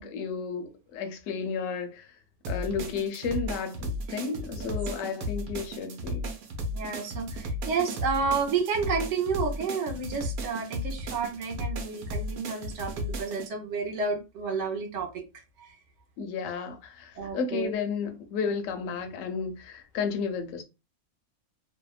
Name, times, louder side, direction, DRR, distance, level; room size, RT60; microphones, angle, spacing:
voice 1, 0.0-2.1 2.5-6.3 16.2-20.6, left 5 dB, 70° left, 0.9 m, -32 dB
sound 1, 2.4-13.5, equal, 85° right, 1.1 m, -35 dB
voice 2, 6.7-15.2 15.6-15.7 17.2-17.7, right 5 dB, 60° right, 0.9 m, -31 dB
2.7 x 2.1 x 2.3 m
omnidirectional pair, 1.5 m